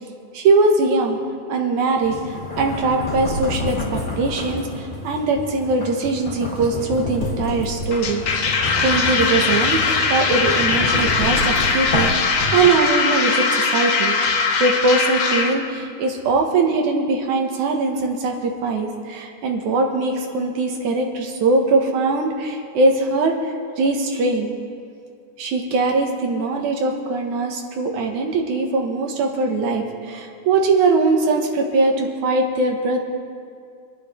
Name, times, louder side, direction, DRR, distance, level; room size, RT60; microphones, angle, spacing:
voice 1, 0.3-1.2 1.5-9.8 10.1-24.5 25.4-33.0, right 3 dB, 75° right, 2 dB, 2.7 m, -21 dB
sound 1, 2.0-13.0, left 2 dB, 15° left, 2.1 m, -29 dB
sound 2, 7.9-15.5, left 4 dB, 65° left, 1.2 m, -20 dB
27.5 x 9.9 x 3.4 m, 2.3 s
omnidirectional pair, 3.5 m